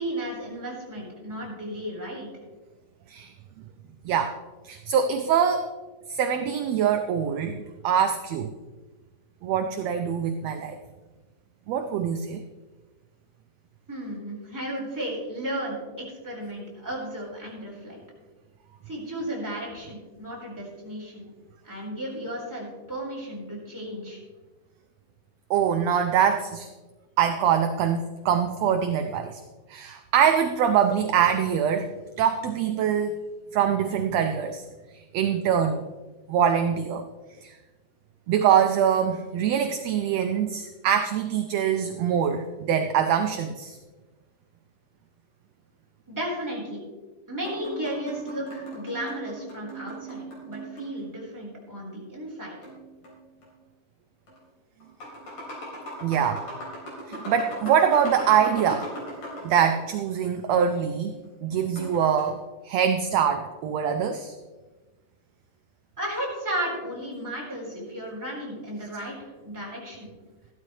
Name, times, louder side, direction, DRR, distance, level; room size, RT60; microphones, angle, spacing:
voice 1, 0.0-2.3 13.9-18.0 18.9-21.2 21.6-24.2 46.1-46.8 47.3-52.6 66.0-70.1, right 1 dB, 5° right, -5 dB, 4.1 m, -34 dB
voice 2, 4.0-4.4 4.6-5.7 6.1-7.6 7.8-8.5 9.4-10.8 11.7-12.4 25.5-26.7 27.2-29.4 29.7-31.9 32.2-33.2 33.5-34.6 34.9-35.9 36.3-37.0 37.4-37.5 38.3-43.8 56.0-56.5 57.1-58.9 59.4-64.4, right 8 dB, 75° right, 7 dB, 1.6 m, -24 dB
sound 1, 47.4-51.2 52.6-53.5 54.3-54.4 54.8-59.9 61.6-62.3, right 1 dB, 75° left, 5.3 m, -39 dB
14.5 x 12.5 x 3.2 m, 1.2 s
omnidirectional pair, 3.6 m